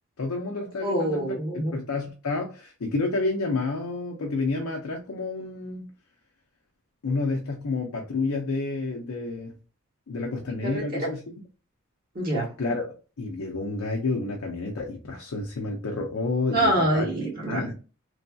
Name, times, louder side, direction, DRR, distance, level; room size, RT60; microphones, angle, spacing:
voice 1, 0.2-1.4 1.7-5.9 7.0-9.5 10.1-11.2 12.6-12.9 13.2-17.1 17.5-17.8, left 3 dB, 75° left, 0.5 m, -29 dB
voice 2, 0.8-1.8 10.6-11.1 12.1-12.5 16.5-17.8, right 1 dB, 40° right, 1.3 m, -26 dB
3.2 x 2.5 x 2.3 m
head